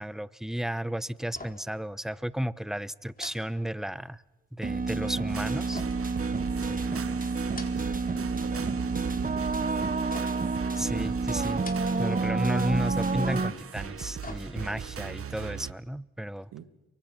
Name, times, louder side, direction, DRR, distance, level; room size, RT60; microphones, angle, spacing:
voice 1, 0.0-4.2 4.5-5.8 6.6-7.2 10.8-11.6 11.9-16.5, equal, ahead, 0.9 m, -33 dB
sound 1, 1.3-1.8 2.1-2.3 3.1-4.2 5.7-6.8 7.4-8.1 8.4-9.0 10.1-10.6 11.5-12.2 12.5-12.7 13.8-14.9 15.3-15.4, left 2 dB, 25° left, 4.4 m, -46 dB
sound 2, 4.6-13.5, right 3 dB, 25° right, 1.6 m, -29 dB
sound 3, 5.3-15.7, right 7 dB, 45° right, 1.2 m, -39 dB
voice 2, 6.8-9.6 16.5-16.7, right 10 dB, 75° right, 2.1 m, -44 dB
29.5 x 24.0 x 6.0 m
hypercardioid pair, 45°, 32 cm